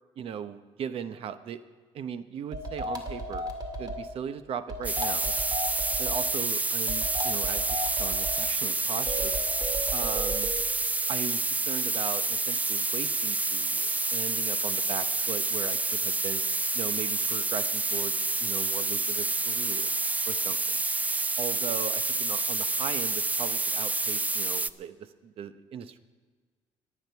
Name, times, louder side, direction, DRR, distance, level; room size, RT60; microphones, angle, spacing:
voice 1, 0.2-1.6 1.9-3.5 3.8-5.3 6.0-9.4 9.9-10.5 11.1-16.4 16.7-18.1 18.4-19.9 20.3-20.8 21.4-26.0, right 8 dB, 60° right, 12 dB, 0.9 m, -38 dB
sound 1, 2.5-4.1 4.7-6.2 6.9-8.4 9.1-10.6, right 1 dB, 40° right, 2.2 m, -34 dB
sound 2, 4.8-24.7, right 3 dB, 15° right, 0.4 m, -28 dB
23.0 x 8.8 x 4.6 m, 1.5 s
cardioid pair, 95°, 11 cm